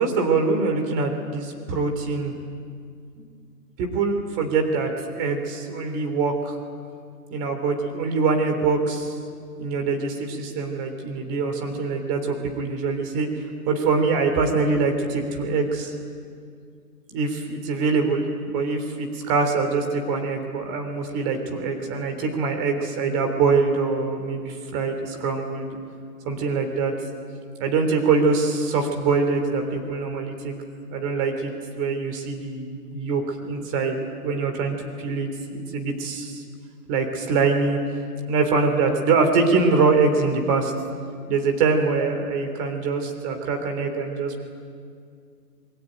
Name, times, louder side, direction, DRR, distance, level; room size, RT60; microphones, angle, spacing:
voice 1, 0.0-2.3 3.8-6.6 7.3-9.1 9.6-15.9 17.1-25.8 26.2-26.9 27.6-30.5 30.9-36.4 36.9-37.8 38.3-40.7 41.3-44.4, right 4 dB, 20° right, 5 dB, 3.4 m, -24 dB
27.0 x 23.0 x 9.2 m, 2.2 s
hypercardioid pair, 155°, 47 cm